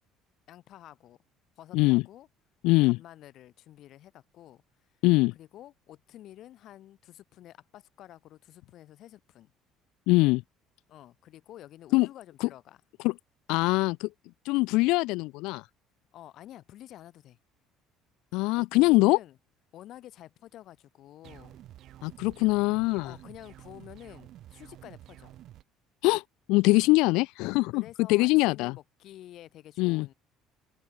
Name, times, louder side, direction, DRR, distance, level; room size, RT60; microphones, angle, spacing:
voice 1, 0.5-1.2 1.6-2.3 2.8-4.6 5.3-9.5 10.9-12.8 16.1-17.4 18.5-19.4 19.7-21.6 23.0-25.3 27.1-27.2 27.7-30.1, left 13 dB, 50° left, 5.1 m, -49 dB
voice 2, 2.6-3.0 5.0-5.3 10.1-10.4 11.9-12.1 12.4-12.5 13.0-13.1 13.5-14.1 14.4-15.6 18.3-19.2 22.0-23.1 26.0-26.2 26.5-27.8 28.1-28.7 29.8-30.1, left 23 dB, 80° left, 1.1 m, -23 dB
sound 1, 21.2-25.6, right 13 dB, 50° right, 7.3 m, -50 dB
open air
cardioid pair, 165°, 0 cm